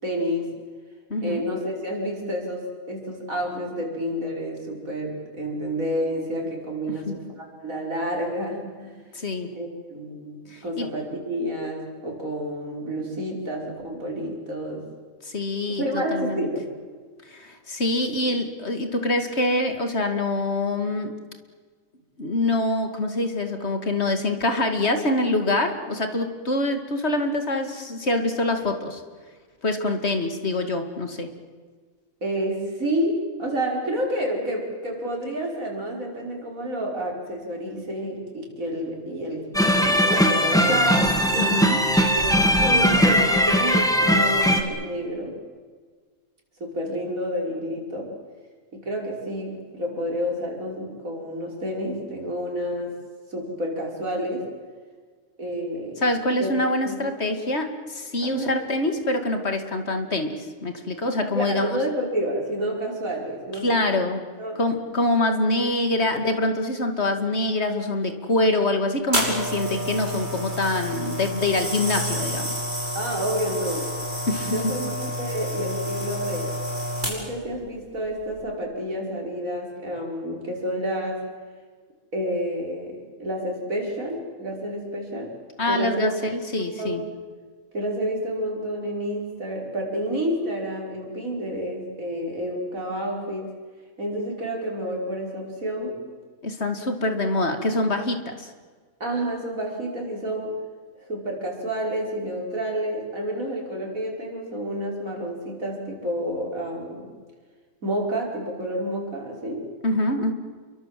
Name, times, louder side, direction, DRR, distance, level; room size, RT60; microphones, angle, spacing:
voice 1, 0.0-0.5 1.2-9.0 9.5-14.8 15.7-16.6 32.2-41.2 42.1-45.4 46.6-48.1 48.7-52.9 53.3-54.4 55.4-56.0 56.4-56.6 56.8-57.0 58.2-58.6 61.3-64.0 64.4-64.6 72.9-74.1 74.4-76.5 77.0-81.3 82.1-85.3 85.6-86.1 86.8-87.0 87.7-93.5 94.0-96.0 99.0-100.6 101.0-107.1 107.8-109.7, equal, 75° right, 0 dB, 5.8 m, -29 dB
voice 2, 1.1-1.4 7.1-7.2 9.1-9.5 10.5-10.9 15.2-16.5 17.3-21.1 22.2-29.0 29.6-31.3 41.4-41.8 56.0-61.7 63.6-64.2 64.6-72.5 74.3-74.7 85.6-87.0 96.4-98.5 109.8-110.3, left 2 dB, 50° left, 6 dB, 2.6 m, -25 dB
sound 1, 39.5-44.6, equal, 5° left, 2.4 m, -19 dB
sound 2, 69.1-77.5 78.2-78.4, equal, 35° right, 6.4 m, -29 dB
28.5 x 23.5 x 7.7 m, 1.5 s
omnidirectional pair, 1.4 m